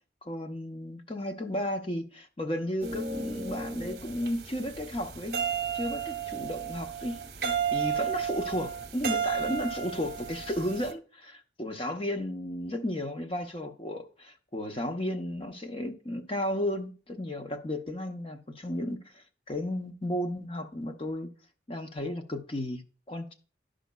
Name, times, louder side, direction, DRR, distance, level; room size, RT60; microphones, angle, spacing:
voice 1, 0.2-5.4 5.7-7.2 7.7-21.3 21.7-22.8 23.1-23.3, left 1 dB, 30° left, 0.7 m, -34 dB
sound 1, 2.8-10.9, right 7 dB, 55° right, 0.8 m, -33 dB
11.5 x 5.1 x 2.2 m
head